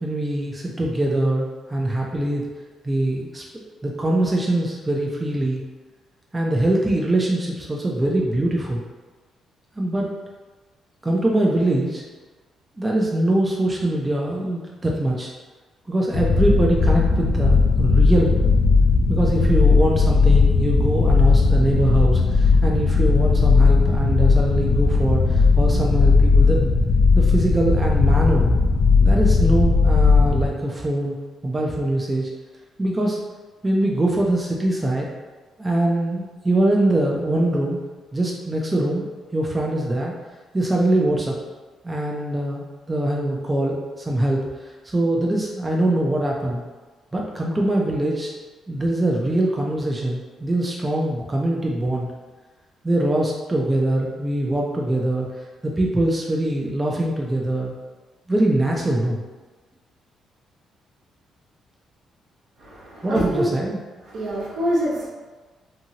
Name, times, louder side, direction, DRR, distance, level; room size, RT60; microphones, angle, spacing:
voice 1, 0.0-2.4 2.8-3.4 3.8-5.6 6.3-8.8 9.8-10.1 11.0-12.0 12.8-15.3 15.9-18.4 19.1-26.7 27.1-28.5 29.0-31.1 31.4-32.3 32.8-33.2 33.6-35.1 35.6-37.8 38.1-39.1 39.3-40.1 40.5-41.3 41.8-46.6 47.1-48.3 48.7-52.1 52.8-55.3 55.6-57.7 58.3-59.2 63.0-63.8, right 1 dB, 20° right, -2 dB, 0.4 m, -23 dB
sound 1, 16.1-30.5, left 4 dB, 65° left, 0.3 m, -17 dB
voice 2, 62.6-63.4 64.1-65.1, equal, 75° right, -6 dB, 1.0 m, -25 dB
2.7 x 2.6 x 2.8 m, 1.3 s
cardioid pair, 90°, 0 cm